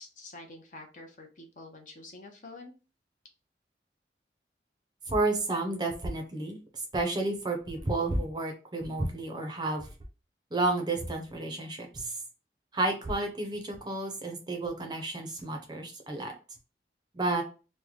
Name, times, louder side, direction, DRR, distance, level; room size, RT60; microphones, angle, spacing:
voice 1, 0.0-2.7, left 2 dB, 45° left, 2 dB, 0.7 m, -47 dB
voice 2, 5.1-6.6 6.9-9.9 10.5-12.1 12.7-16.3 17.1-17.4, right 2 dB, 25° right, 3 dB, 0.6 m, -31 dB
3.1 x 2.1 x 3.6 m, 0.34 s
head